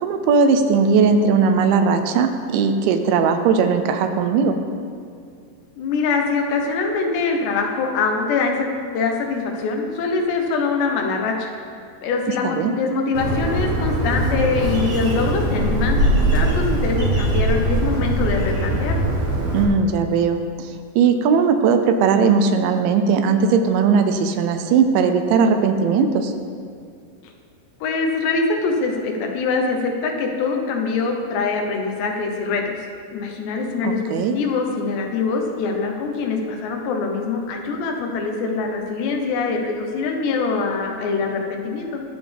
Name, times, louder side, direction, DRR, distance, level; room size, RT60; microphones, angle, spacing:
voice 1, 0.0-4.6 12.4-12.7 19.5-20.7 21.0-26.3 33.8-34.4, right 5 dB, 80° right, 7 dB, 3.0 m, -18 dB
voice 2, 5.8-8.7 8.9-11.5 12.0-19.0 27.2-27.3 27.8-32.8 33.1-42.0, left 4 dB, 75° left, 2 dB, 3.2 m, -23 dB
Bird, 13.1-19.6, right 1 dB, 45° right, 2.4 m, -21 dB
22.5 x 7.6 x 3.6 m, 2.2 s
omnidirectional pair, 5.3 m